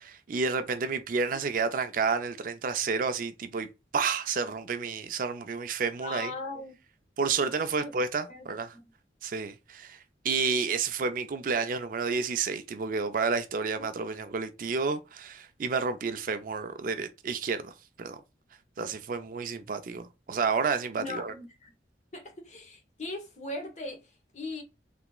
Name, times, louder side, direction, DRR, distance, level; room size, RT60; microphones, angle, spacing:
voice 1, 0.0-3.7 3.9-6.3 7.2-8.7 9.2-18.2 18.8-21.3, right 5 dB, 50° right, 0.4 m, -30 dB
voice 2, 6.0-6.7 7.8-7.9 8.3-8.5 13.8-13.9 20.9-21.7 22.1-24.6, left 2 dB, 40° left, 1.0 m, -39 dB
3.4 x 2.9 x 2.3 m
head